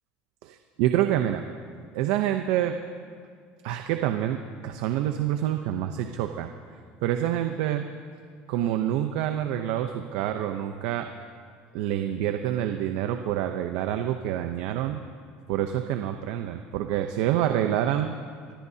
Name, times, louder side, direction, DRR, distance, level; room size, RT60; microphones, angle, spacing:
voice 1, 0.8-1.4 1.9-2.7 3.6-6.5 7.0-7.9 8.5-11.0 11.7-15.0 15.5-18.1, right 11 dB, 75° right, 6 dB, 0.8 m, -27 dB
24.0 x 20.5 x 2.8 m, 2.1 s
supercardioid pair, 120°, 4 cm